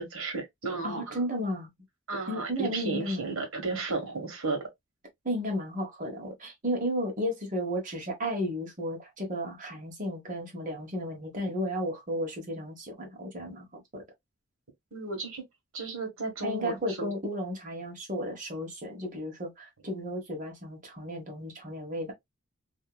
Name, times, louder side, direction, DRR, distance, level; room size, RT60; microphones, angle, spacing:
voice 1, 0.0-1.2 2.1-4.7 14.9-15.5 15.7-17.1, right 3 dB, 70° right, 1.2 m, -34 dB
voice 2, 0.8-1.7 2.3-3.3 5.2-14.0 16.4-22.1, equal, 35° right, 1.0 m, -33 dB
2.8 x 2.7 x 2.2 m
head